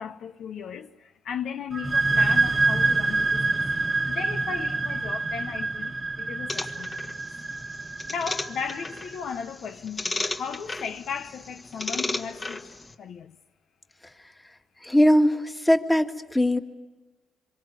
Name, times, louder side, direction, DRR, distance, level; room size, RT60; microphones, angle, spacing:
voice 1, 0.0-3.7 4.0-7.1 8.1-13.4, left 7 dB, 70° left, 0.9 m, -36 dB
sound 1, 1.7-9.2, right 3 dB, 25° right, 1.3 m, -26 dB
sound 2, 6.5-12.9, left 2 dB, 30° left, 1.6 m, -35 dB
voice 2, 14.8-16.6, equal, 15° left, 1.8 m, -20 dB
26.0 x 23.5 x 9.5 m
cardioid pair, 90°, 0 cm